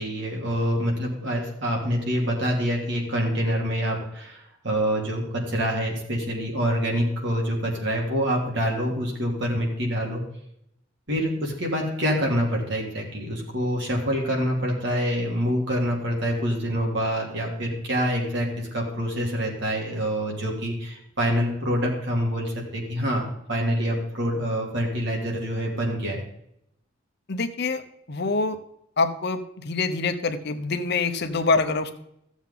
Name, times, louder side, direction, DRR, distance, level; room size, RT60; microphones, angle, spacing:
voice 1, 0.0-10.2 11.1-23.2 23.5-26.2, equal, 65° right, 0 dB, 2.9 m, -26 dB
voice 2, 27.3-27.8 28.1-28.6 29.0-31.9, left 3 dB, 60° left, 8 dB, 0.9 m, -25 dB
15.0 x 7.2 x 3.8 m, 0.76 s
head